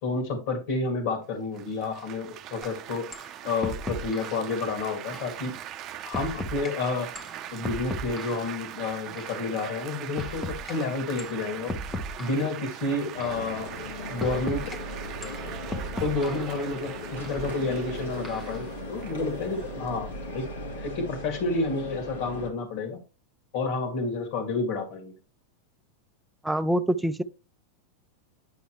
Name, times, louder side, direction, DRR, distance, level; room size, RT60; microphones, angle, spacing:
voice 1, 0.0-3.1 3.4-5.5 6.0-7.1 7.5-11.8 12.2-13.7 14.1-14.7 16.0-20.4 20.8-23.0 23.5-25.1, left 3 dB, 60° left, 2.2 m, -30 dB
Laughter / Applause / Chatter, 1.5-20.7, right 11 dB, 40° right, 0.7 m, -41 dB
sound 1, 2.6-2.7 3.1-3.3 3.6-4.4 5.1-5.4 6.1-6.7 7.1-8.5 9.2-9.4 10.2-10.7 11.2-11.4 11.7-12.5 13.2-13.5 14.2-14.8 15.2-16.5 17.2-17.4 18.2-18.6, left 1 dB, 15° left, 1.1 m, -36 dB
sound 2, 13.1-22.5, left 1 dB, 85° left, 2.3 m, -37 dB
voice 2, 26.4-27.2, right 1 dB, 5° right, 0.6 m, -25 dB
10.0 x 5.2 x 3.1 m
hypercardioid pair, 115°, 0 cm